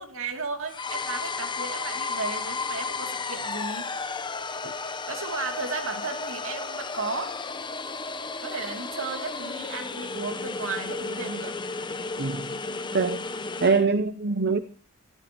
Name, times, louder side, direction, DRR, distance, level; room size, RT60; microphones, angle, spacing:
voice 1, 0.0-3.9 5.1-7.4 8.4-11.6 12.7-12.8, right 4 dB, 70° right, 5 dB, 2.8 m, -34 dB
sound 1, 0.7-13.9, left 4 dB, 20° left, 0.8 m, -33 dB
voice 2, 12.2-12.5 12.9-13.2 13.6-14.6, right 4 dB, 50° right, 11 dB, 0.8 m, -23 dB
26.0 x 14.5 x 3.0 m, 0.38 s
head